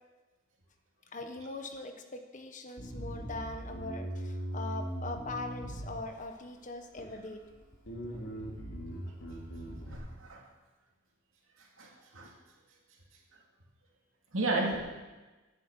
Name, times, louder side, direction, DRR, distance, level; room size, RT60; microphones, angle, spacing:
voice 1, 1.1-7.4 8.0-8.3, left 2 dB, 40° left, 6 dB, 1.2 m, -41 dB
Bass guitar, 2.8-6.4 7.0-7.5 7.8-10.0, equal, 65° left, 3.9 m, -40 dB
voice 2, 9.9-10.4 11.8-12.3 14.3-14.8, right 2 dB, 80° right, -2 dB, 2.6 m, -33 dB
10.0 x 7.6 x 8.9 m, 1.2 s
head